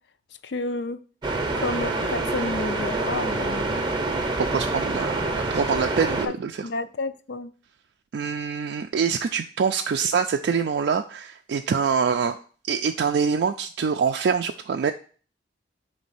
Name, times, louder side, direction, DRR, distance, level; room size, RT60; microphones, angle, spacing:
voice 1, 0.4-1.0 1.6-3.9 6.3-6.4 6.6-7.5, left 3 dB, 65° left, 0.4 m, -30 dB
sound 1, 1.2-6.3, right 2 dB, 25° right, 0.7 m, -26 dB
voice 2, 4.4-6.7 8.1-12.4 12.7-14.9, right 6 dB, 65° right, 0.3 m, -25 dB
5.2 x 3.3 x 5.5 m
head